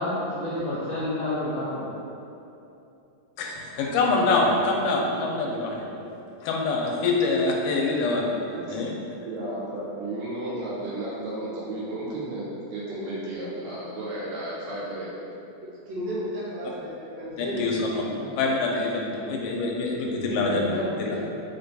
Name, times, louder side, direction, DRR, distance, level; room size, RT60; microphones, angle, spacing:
voice 1, 0.0-1.9 20.3-21.2, left 1 dB, 70° left, -10 dB, 1.6 m, -30 dB
voice 2, 3.4-5.8 6.4-8.3 8.7-8.9 17.4-18.0 18.4-20.6, left 3 dB, 85° left, -1 dB, 2.1 m, -25 dB
voice 3, 9.2-15.1, right 1 dB, 80° right, -6 dB, 2.0 m, -33 dB
voice 4, 15.6-17.7 18.0-18.3, equal, 65° right, -9 dB, 1.7 m, -34 dB
5.0 x 2.2 x 3.9 m, 2.7 s
omnidirectional pair, 3.7 m